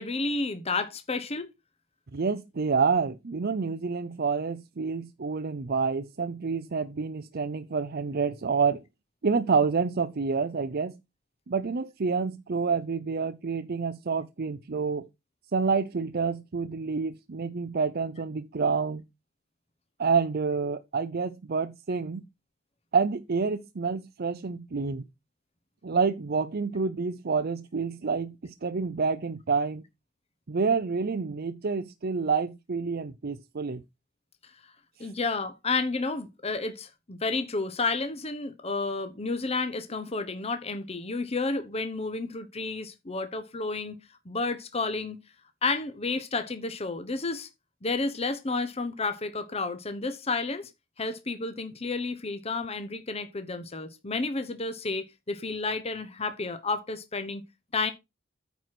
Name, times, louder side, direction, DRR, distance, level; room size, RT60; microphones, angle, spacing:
voice 1, 0.0-1.5 35.0-43.9 44.3-45.2 45.6-47.5 47.8-50.7 51.0-57.4 57.7-57.9, left 3 dB, 30° left, 1.0 m, -31 dB
voice 2, 2.1-8.8 9.2-11.0 11.5-15.1 15.5-19.0 20.0-22.2 22.9-25.1 25.8-29.8 30.5-33.8 35.0-35.1, right 5 dB, 50° right, 0.6 m, -28 dB
9.2 x 4.7 x 6.0 m
head